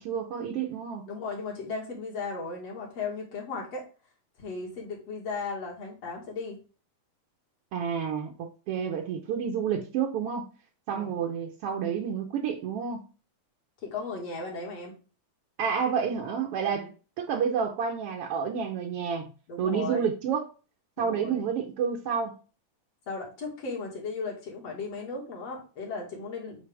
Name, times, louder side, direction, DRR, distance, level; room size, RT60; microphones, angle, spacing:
voice 1, 0.0-1.0 7.7-10.5 10.9-13.0 15.6-16.9 17.2-19.3 19.6-20.5 21.0-22.4, right 7 dB, 70° right, 1.4 m, -29 dB
voice 2, 1.1-3.9 4.4-6.6 10.9-11.2 13.8-14.9 16.7-16.9 19.5-20.1 21.0-21.5 23.1-26.6, left 4 dB, 55° left, 2.8 m, -36 dB
8.5 x 4.3 x 3.4 m
omnidirectional pair, 3.6 m